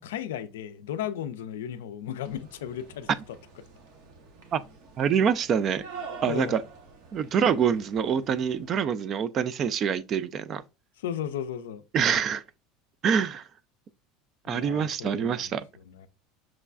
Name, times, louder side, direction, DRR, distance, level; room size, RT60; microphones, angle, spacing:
voice 1, 0.0-3.1 6.3-6.6 11.0-11.8 14.5-16.1, left 9 dB, 85° left, 0.3 m, -35 dB
sound 1, 2.2-8.7, right 4 dB, 70° right, 0.9 m, -46 dB
voice 2, 5.0-5.8 6.2-6.6 7.1-10.6 11.9-12.4 13.0-13.4 14.5-15.7, right 7 dB, 45° right, 0.3 m, -25 dB
6.0 x 2.2 x 2.4 m
hypercardioid pair, 90°, 0 cm